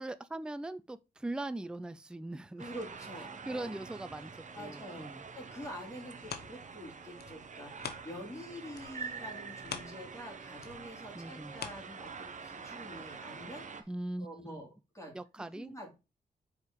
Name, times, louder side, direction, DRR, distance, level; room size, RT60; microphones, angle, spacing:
voice 1, 0.0-2.6 3.5-5.2 11.2-11.5 13.9-14.6 15.1-15.9, right 2 dB, 5° right, 0.5 m, -40 dB
voice 2, 2.6-3.7 4.5-13.9 14.2-14.7 14.9-15.9, equal, 15° left, 2.7 m, -47 dB
sound 1, 2.6-13.8, right 5 dB, 45° right, 1.0 m, -46 dB
sound 2, 5.5-8.4 8.7-12.5 13.0-13.1, left 7 dB, 70° left, 0.9 m, -46 dB
4.8 x 4.7 x 5.2 m
cardioid pair, 80°, 17 cm